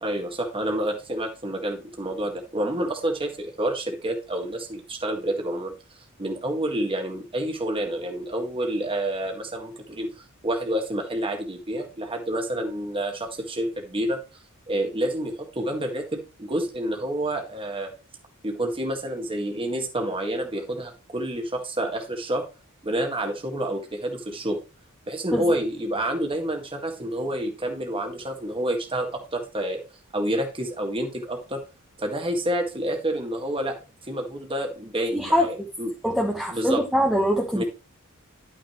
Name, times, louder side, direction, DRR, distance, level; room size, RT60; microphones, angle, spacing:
voice 1, 0.0-5.7 6.2-10.1 10.4-14.2 14.7-17.9 18.4-22.4 22.8-24.6 25.1-29.8 30.1-31.6 32.0-33.8 34.1-35.9 36.5-36.8 37.5-37.6, right 1 dB, 25° right, 1.7 m, -28 dB
voice 2, 35.1-35.5 36.0-37.6, equal, ahead, 1.1 m, -23 dB
11.0 x 6.1 x 3.1 m
head